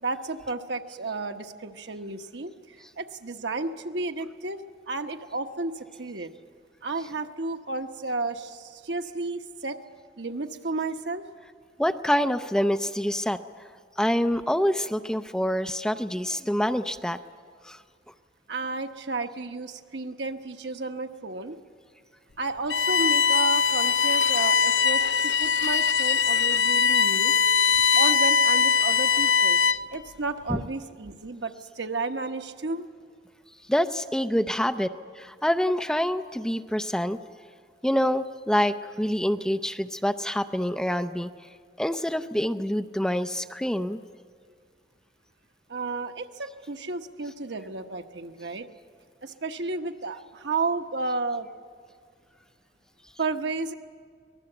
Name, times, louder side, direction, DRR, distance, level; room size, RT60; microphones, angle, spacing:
voice 1, 0.0-6.3 6.8-9.8 10.2-11.3 18.5-21.6 22.4-27.3 28.0-29.6 29.9-32.9 45.7-48.7 49.2-51.5 53.2-53.7, right 3 dB, 75° right, 6 dB, 1.1 m, -32 dB
voice 2, 11.8-13.4 14.0-17.2 17.7-17.8 30.5-30.6 33.7-34.9 35.2-37.2 37.8-41.3 41.8-44.0, equal, 5° left, 8 dB, 0.5 m, -26 dB
Bowed string instrument, 22.7-29.9, left 6 dB, 90° left, 0.6 m, -21 dB
24.5 x 19.0 x 7.9 m, 2.1 s
head